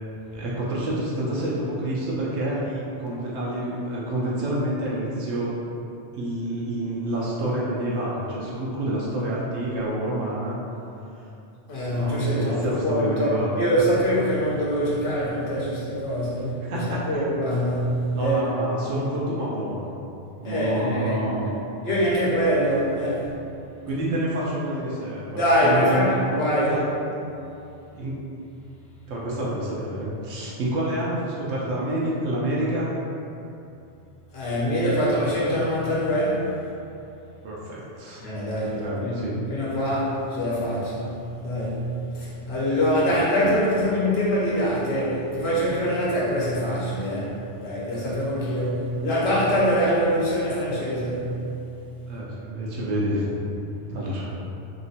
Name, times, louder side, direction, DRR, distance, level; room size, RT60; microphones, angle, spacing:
voice 1, 0.3-5.5 6.1-10.6 11.9-13.6 16.4-17.1 18.1-20.0 20.4-21.6 23.9-26.9 27.9-28.2 29.1-32.9 37.4-38.3 38.7-39.4 43.0-43.1 52.1-53.4 53.9-54.3, right 1 dB, 80° right, -6 dB, 0.9 m, -28 dB
voice 2, 11.7-18.4 20.4-21.2 21.8-23.3 25.3-26.8 34.3-36.5 38.2-51.4, equal, 65° left, -7 dB, 1.0 m, -24 dB
3.0 x 2.9 x 2.8 m, 2.7 s
omnidirectional pair, 1.2 m